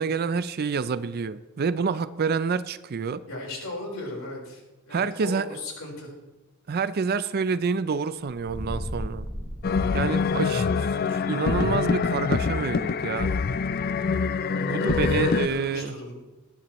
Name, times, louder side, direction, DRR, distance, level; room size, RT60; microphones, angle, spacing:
voice 1, 0.0-3.2 4.9-5.6 6.7-9.3 9.9-13.3 14.6-15.9, right 5 dB, 45° right, 14 dB, 0.4 m, -28 dB
voice 2, 3.3-6.1 10.0-10.5 14.3-16.1, left 1 dB, 70° left, -1 dB, 4.4 m, -37 dB
sound 1, 8.4-10.7, equal, 5° right, 4.8 m, -35 dB
sound 2, 9.6-15.5, left 5 dB, 45° left, 0.4 m, -25 dB
19.5 x 11.5 x 3.1 m, 1.1 s
head